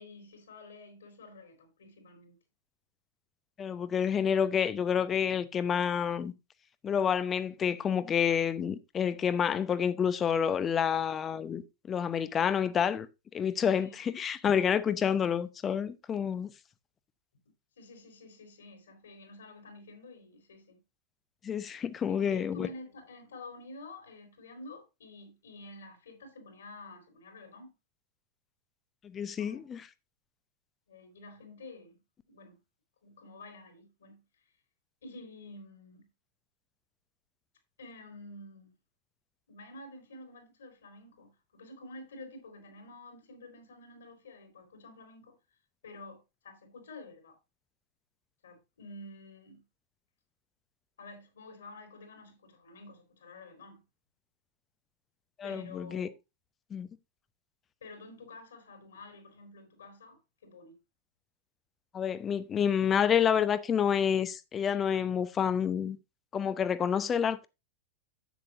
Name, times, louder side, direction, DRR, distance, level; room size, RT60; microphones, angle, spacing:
voice 1, 0.0-2.4 13.8-14.0 17.8-20.8 22.1-27.7 29.4-29.7 30.9-32.0 32.3-32.6 33.0-34.2 35.0-36.1 37.8-38.7 39.5-45.4 45.8-47.4 48.4-49.6 51.0-53.8 55.4-56.1 57.8-60.8, left 2 dB, 65° left, 4.2 m, -49 dB
voice 2, 3.6-6.3 6.8-11.6 11.9-13.1 13.3-16.5 21.4-22.7 29.0-29.8 55.4-56.1 56.7-56.9 61.9-66.0 66.3-67.5, left 8 dB, 25° left, 0.7 m, -28 dB
10.5 x 8.6 x 2.6 m
figure-of-eight pair, 90°, 0 cm